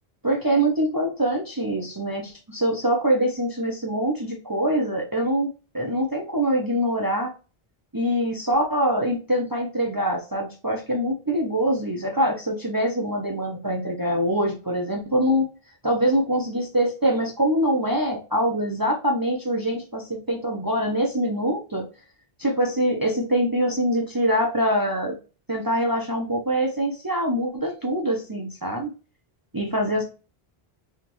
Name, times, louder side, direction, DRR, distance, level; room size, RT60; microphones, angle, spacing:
voice 1, 0.2-7.3 7.9-15.5 15.8-21.9 22.4-25.2 25.5-28.9 29.5-30.0, equal, 25° right, 0 dB, 0.7 m, -24 dB
3.6 x 3.2 x 3.0 m, 0.32 s
omnidirectional pair, 1.0 m